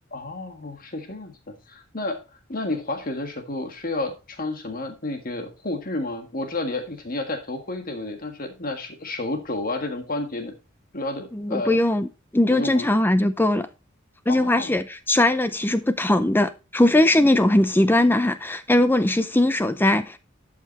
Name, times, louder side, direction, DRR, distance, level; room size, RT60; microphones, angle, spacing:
voice 1, 0.1-2.2 2.5-10.5 10.9-11.8 12.5-12.9 14.3-14.7, left 2 dB, 45° left, 1.6 m, -31 dB
voice 2, 11.3-13.7 14.3-20.2, left 1 dB, 10° left, 0.5 m, -20 dB
12.0 x 6.0 x 4.1 m
head